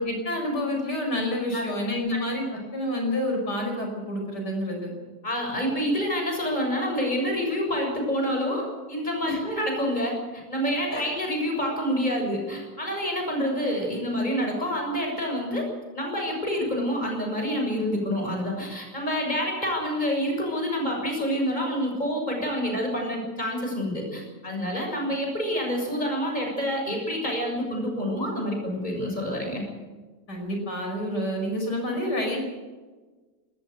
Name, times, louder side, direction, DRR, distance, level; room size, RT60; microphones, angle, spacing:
voice 1, 0.0-2.4 2.7-4.9 9.3-9.4 10.9-11.1 30.3-32.4, left 1 dB, 75° left, 2 dB, 6.0 m, -28 dB
voice 2, 5.2-15.7 15.9-29.6, equal, 25° left, 1 dB, 7.1 m, -27 dB
20.0 x 18.5 x 8.0 m, 1.3 s
omnidirectional pair, 1.8 m